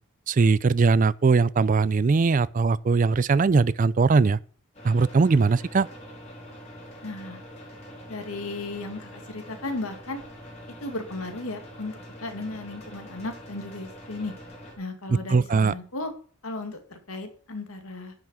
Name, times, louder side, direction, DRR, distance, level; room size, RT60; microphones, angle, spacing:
voice 1, 0.3-4.4 4.8-5.9 15.3-15.7, right 4 dB, 40° right, 0.3 m, -20 dB
sound 1, 4.7-14.7, equal, 30° left, 3.2 m, -44 dB
voice 2, 7.0-7.4 8.1-10.2 10.8-14.3 14.8-16.1 16.4-18.1, left 2 dB, 85° left, 2.2 m, -35 dB
10.5 x 5.9 x 6.3 m
head